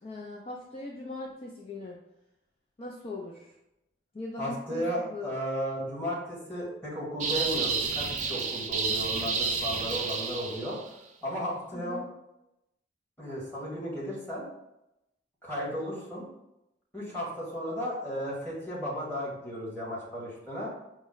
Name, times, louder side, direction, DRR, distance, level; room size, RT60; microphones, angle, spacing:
voice 1, 0.0-2.0 2.8-3.5 4.1-4.8 5.1-5.3 11.7-12.1, left 2 dB, 30° left, -2 dB, 0.4 m, -39 dB
voice 2, 4.4-10.8 11.2-12.0 13.2-14.5 15.4-16.3 16.9-20.7, equal, 10° left, -7 dB, 1.4 m, -34 dB
sound 1, 7.2-10.9, right 5 dB, 40° right, 0.4 m, -30 dB
4.9 x 2.1 x 3.8 m, 0.89 s
head